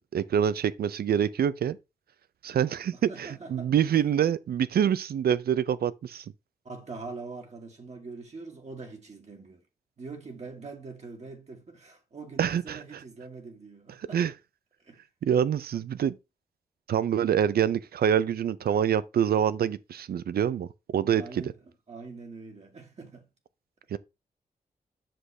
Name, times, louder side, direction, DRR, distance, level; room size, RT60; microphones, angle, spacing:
voice 1, 0.1-1.8 2.4-6.2 12.4-12.8 14.1-14.3 15.2-16.2 16.9-21.4 23.9-24.0, right 9 dB, 80° right, 0.5 m, -26 dB
voice 2, 2.5-4.0 6.6-9.6 10.0-14.2 14.8-15.0 21.1-21.6 21.9-23.3 23.9-24.0, right 4 dB, 45° right, 1.6 m, -43 dB
7.6 x 6.4 x 3.3 m
wide cardioid pair, 105°, 16 cm